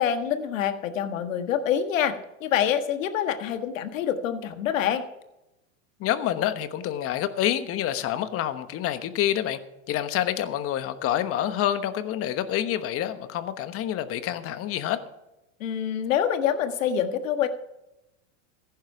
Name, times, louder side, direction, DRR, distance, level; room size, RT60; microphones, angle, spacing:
voice 1, 0.0-5.0 15.6-17.5, left 9 dB, 80° left, 8 dB, 1.6 m, -26 dB
voice 2, 6.0-9.6 9.9-15.0, left 11 dB, 35° left, 11 dB, 1.2 m, -27 dB
15.5 x 10.5 x 4.8 m, 0.93 s
supercardioid pair, 125°, 39 cm